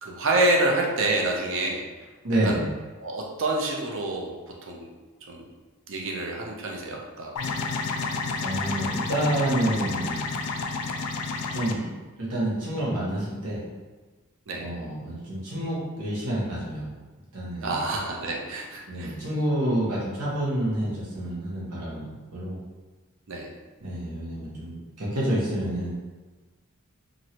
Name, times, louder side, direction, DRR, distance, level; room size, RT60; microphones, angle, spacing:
voice 1, 0.0-1.8 2.4-2.6 3.0-4.3 4.6-4.9 5.3-5.4 5.9-7.3 14.5-14.7 17.6-19.1 23.3-23.5, right 2 dB, 60° right, -1 dB, 0.6 m, -27 dB
voice 2, 2.2-2.6 8.4-10.2 11.5-11.9 12.2-13.6 14.6-16.9 17.3-17.7 18.9-22.6 23.8-26.0, right 1 dB, 85° right, -7 dB, 1.1 m, -28 dB
sound 1, 7.4-11.7, left 4 dB, 75° left, 0.3 m, -30 dB
3.1 x 2.6 x 2.8 m, 1.3 s
head